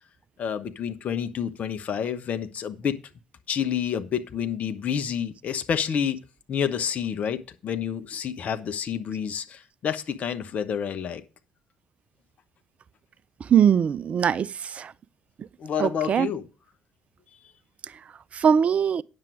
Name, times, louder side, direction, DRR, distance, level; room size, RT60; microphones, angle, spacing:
voice 1, 0.4-2.9 3.5-6.2 6.5-11.2 15.6-16.5, left 8 dB, 50° left, 1.1 m, -29 dB
voice 2, 13.5-14.5 14.7-14.9 15.8-16.3 18.3-19.0, right 8 dB, 40° right, 0.4 m, -21 dB
9.6 x 7.5 x 4.8 m
figure-of-eight pair, 50°, 3 cm